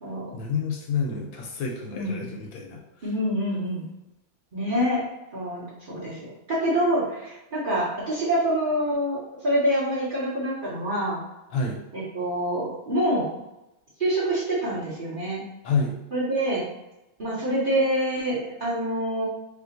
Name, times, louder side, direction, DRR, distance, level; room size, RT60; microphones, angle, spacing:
voice 1, 0.3-3.1 11.5-11.8 15.6-15.9, left 4 dB, 75° left, 1 dB, 1.4 m, -29 dB
voice 2, 3.0-3.9 4.5-5.0 5.3-6.2 6.5-11.2 11.9-13.4 14.0-15.4 16.1-16.6 17.2-19.2, right 1 dB, 25° right, -8 dB, 1.7 m, -26 dB
3.6 x 3.1 x 3.9 m, 0.94 s
omnidirectional pair, 2.2 m